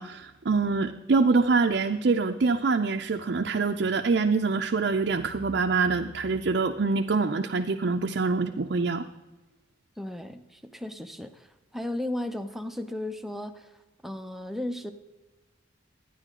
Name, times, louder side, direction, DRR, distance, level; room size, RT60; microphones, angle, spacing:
voice 1, 0.0-9.0, right 4 dB, 55° right, 3 dB, 0.5 m, -25 dB
voice 2, 10.0-11.5 11.7-13.7 14.0-14.9, left 1 dB, ahead, 7 dB, 0.5 m, -35 dB
11.5 x 9.9 x 3.7 m, 1.1 s
head